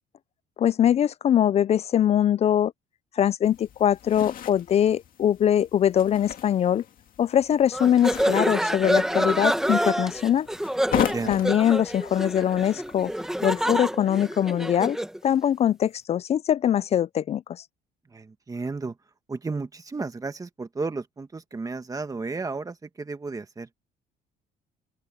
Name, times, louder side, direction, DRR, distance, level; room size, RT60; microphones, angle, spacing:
voice 1, 0.6-2.7 3.2-6.8 7.2-10.5 11.3-13.1 13.4-15.0 15.2-17.6, left 10 dB, 40° left, 0.4 m, -22 dB
sound 1, 3.4-13.8, left 10 dB, 55° left, 2.3 m, -36 dB
sound 2, 7.7-15.2, right 1 dB, 5° right, 1.3 m, -27 dB
voice 2, 10.9-11.4 18.1-19.0 19.3-23.7, right 3 dB, 20° right, 1.8 m, -33 dB
open air
cardioid pair, 110°, 17 cm